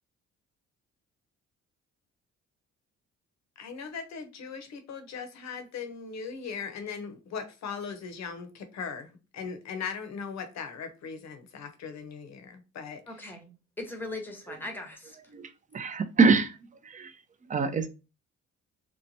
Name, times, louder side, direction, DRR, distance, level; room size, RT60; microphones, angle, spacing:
voice 1, 3.6-13.0, left 6 dB, 65° left, 8 dB, 0.7 m, -39 dB
voice 2, 13.1-15.2, left 2 dB, 5° left, 3 dB, 0.8 m, -39 dB
voice 3, 15.3-16.6 16.8-17.2 17.4-17.9, right 4 dB, 25° right, 10 dB, 0.4 m, -25 dB
2.9 x 2.1 x 2.6 m, 0.30 s
cardioid pair, 90°, 30 cm